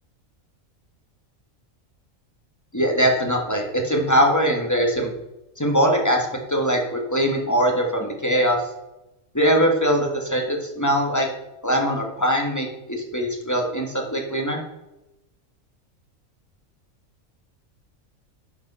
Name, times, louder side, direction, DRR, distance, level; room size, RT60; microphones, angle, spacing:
voice 1, 2.7-5.1 5.6-8.6 9.3-11.3 11.6-14.6, equal, 15° left, 1 dB, 1.7 m, -21 dB
12.0 x 5.2 x 5.6 m, 0.95 s
omnidirectional pair, 1.4 m